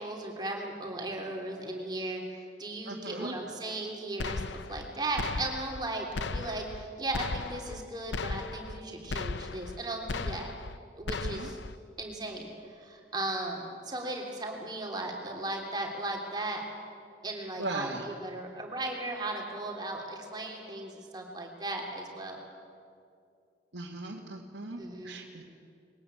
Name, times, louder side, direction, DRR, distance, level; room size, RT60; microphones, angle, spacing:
voice 1, 0.0-2.2 2.6-4.4 4.7-10.5 11.0-11.6 12.0-16.6 17.2-22.4 24.8-25.2, right 2 dB, 25° right, 0 dB, 3.1 m, -36 dB
voice 2, 2.9-3.4 11.3-11.5 17.6-18.0 23.7-25.4, right 2 dB, 85° right, -3 dB, 2.0 m, -38 dB
sound 1, 4.2-4.9 5.2-5.9 6.2-6.8 7.1-7.8 8.1-8.8 9.1-9.8 10.1-10.8 11.1-11.8, left 3 dB, 85° left, 0.7 m, -36 dB
21.5 x 18.0 x 8.9 m, 2.4 s
head